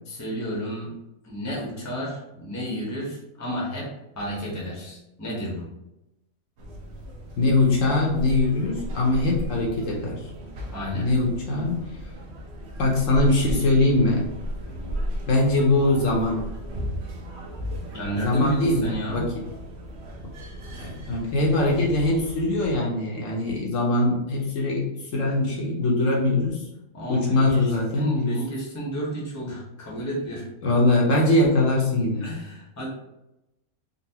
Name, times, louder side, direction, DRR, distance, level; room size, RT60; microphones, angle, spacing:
voice 1, 0.1-0.9 1.2-3.9 4.1-5.7 10.7-11.1 17.9-19.2 26.9-30.4 32.2-32.9, equal, 15° left, -4 dB, 0.7 m, -31 dB
sound 1, 6.6-22.8, equal, 60° right, 0.8 m, -35 dB
voice 2, 7.4-10.2 10.9-11.8 12.8-14.3 15.3-16.4 18.1-19.2 20.8-24.8 25.1-26.6 27.1-28.3 30.6-32.3, left 2 dB, 65° left, -2 dB, 1.0 m, -22 dB
3.9 x 2.2 x 2.8 m, 0.91 s
omnidirectional pair, 1.5 m